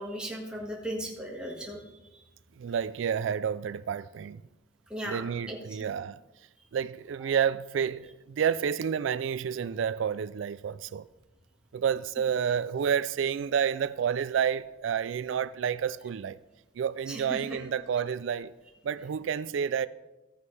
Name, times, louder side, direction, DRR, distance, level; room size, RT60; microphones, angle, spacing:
voice 1, 0.0-1.8 4.9-5.6 17.1-17.6, right 1 dB, 5° right, 1.7 m, -37 dB
voice 2, 2.6-4.4 5.1-6.2 6.7-11.1 11.7-16.4 16.8-18.5 18.8-19.9, right 7 dB, 80° right, 0.3 m, -29 dB
14.5 x 9.6 x 3.3 m
head